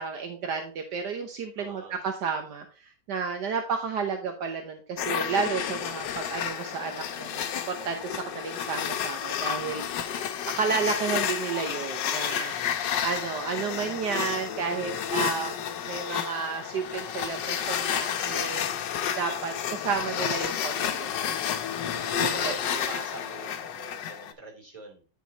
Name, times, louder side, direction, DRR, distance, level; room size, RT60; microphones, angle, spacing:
voice 1, 0.0-2.6 3.1-9.8 10.5-18.6 19.2-21.5 22.2-22.5, right 5 dB, 70° right, 5 dB, 1.4 m, -32 dB
voice 2, 1.6-2.0 9.9-10.4 18.3-18.7 22.0-25.0, right 3 dB, 20° right, 0 dB, 3.0 m, -44 dB
sound 1, 5.0-24.3, left 9 dB, 80° left, 1.4 m, -31 dB
9.3 x 4.5 x 3.9 m, 0.35 s
omnidirectional pair, 1.9 m